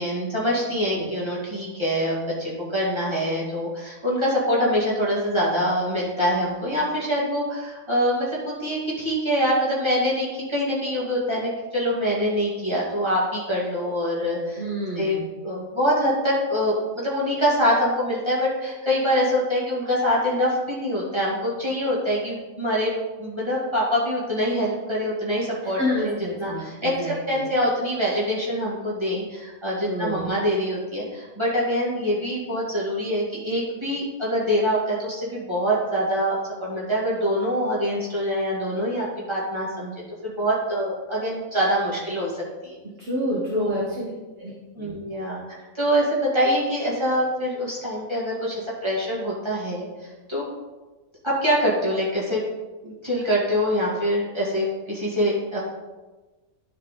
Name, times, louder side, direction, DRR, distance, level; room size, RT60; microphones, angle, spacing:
voice 1, 0.0-14.6 15.0-22.9 23.2-26.9 27.3-39.9 40.2-42.3 42.6-42.8 43.5-43.8 44.8-45.4 45.7-50.4 51.2-52.4 52.8-55.6, equal, 20° right, -6 dB, 2.2 m, -24 dB
voice 2, 14.6-15.3 25.8-27.5 29.9-30.3 43.0-44.1 44.4-44.5 44.8-44.9, equal, 50° right, -4 dB, 1.5 m, -28 dB
11.5 x 4.7 x 3.7 m, 1.2 s
omnidirectional pair, 1.4 m